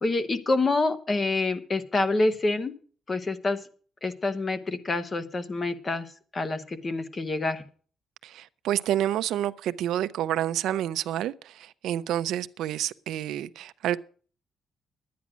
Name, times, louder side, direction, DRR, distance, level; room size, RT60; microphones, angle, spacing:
voice 1, 0.0-2.7 3.1-3.6 4.0-6.1 6.3-7.6, left 2 dB, 25° left, 1.0 m, -27 dB
voice 2, 8.2-14.0, right 12 dB, 80° right, 0.5 m, -29 dB
11.0 x 9.4 x 6.1 m
cardioid pair, 160°, 0 cm